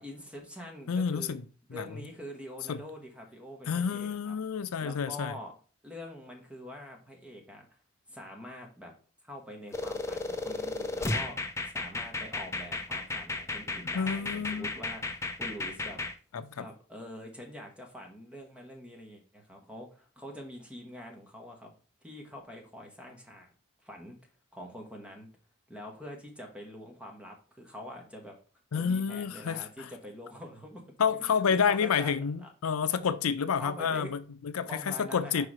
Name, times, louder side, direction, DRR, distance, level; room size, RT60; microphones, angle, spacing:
voice 1, 0.0-1.4 1.7-4.3 4.8-5.6 5.8-7.8 8.1-8.9 9.2-16.0 16.6-21.7 22.0-23.5 23.8-24.2 24.5-25.3 25.7-28.4 28.7-30.8 31.2-32.5 33.6-34.1 34.6-35.5, left 1 dB, 5° right, 1.3 m, -45 dB
voice 2, 0.9-1.4 1.7-1.9 2.7-2.8 3.7-5.3 13.9-14.7 16.3-16.6 28.7-29.9 31.0-35.5, left 6 dB, 80° left, 0.5 m, -29 dB
sound 1, 9.7-16.1, left 3 dB, 15° left, 0.5 m, -34 dB
4.9 x 4.7 x 4.8 m
head